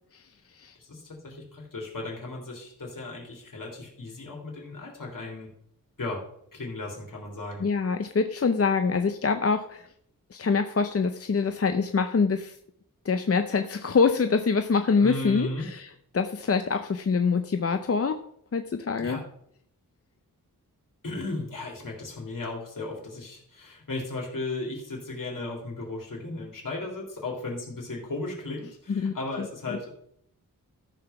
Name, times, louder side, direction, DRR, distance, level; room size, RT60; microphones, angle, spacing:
voice 1, 0.1-0.7 7.6-9.9 10.3-12.6 13.0-15.9 16.1-18.2 18.5-19.2 28.9-29.8, left 5 dB, 45° left, 7 dB, 0.7 m, -25 dB
voice 2, 0.8-5.5 6.0-6.2 6.5-7.7 15.0-15.7 19.0-19.2 21.0-29.9, left 2 dB, 70° left, -1 dB, 3.6 m, -35 dB
13.5 x 5.8 x 5.9 m, 0.69 s
wide cardioid pair, 110°, 34 cm